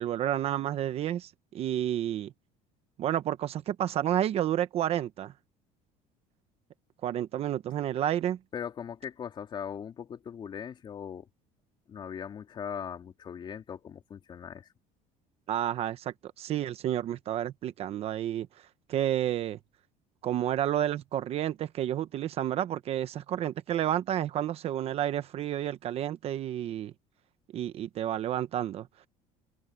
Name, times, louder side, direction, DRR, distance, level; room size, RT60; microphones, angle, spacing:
voice 1, 0.0-2.3 3.0-5.3 7.0-8.4 15.5-18.5 18.9-19.6 20.2-26.9 27.5-28.9, right 11 dB, 40° right, 0.9 m, -30 dB
voice 2, 8.5-11.3 11.9-14.7, left 8 dB, 30° left, 2.9 m, -39 dB
open air
cardioid pair, 160°, 15 cm